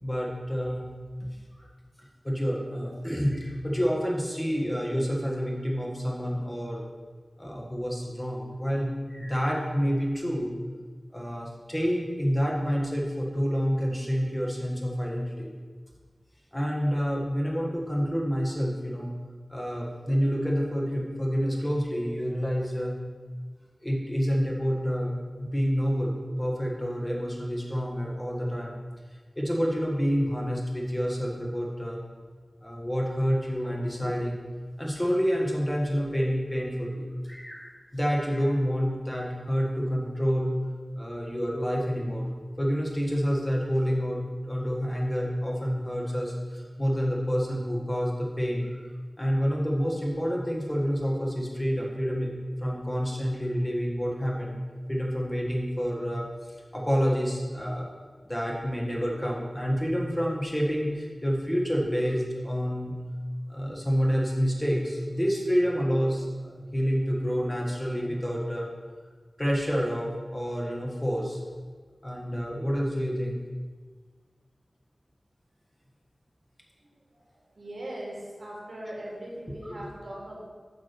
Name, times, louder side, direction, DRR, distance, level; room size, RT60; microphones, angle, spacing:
voice 1, 0.0-0.8 1.6-1.7 2.2-6.8 7.4-10.5 11.1-15.5 16.5-19.1 19.5-23.0 23.8-25.1 25.4-28.7 29.3-32.0 32.6-34.4 34.8-40.5 41.0-42.3 42.6-48.8 49.2-52.3 52.6-54.6 54.9-57.9 58.2-63.0 63.5-68.7 69.4-71.4 72.0-73.4 79.7-79.9, equal, 15° left, -2 dB, 1.5 m, -28 dB
voice 2, 76.8-80.4, right 1 dB, 80° right, -4 dB, 2.6 m, -40 dB
8.4 x 3.7 x 6.7 m, 1.5 s
wide cardioid pair, 70°, 0 cm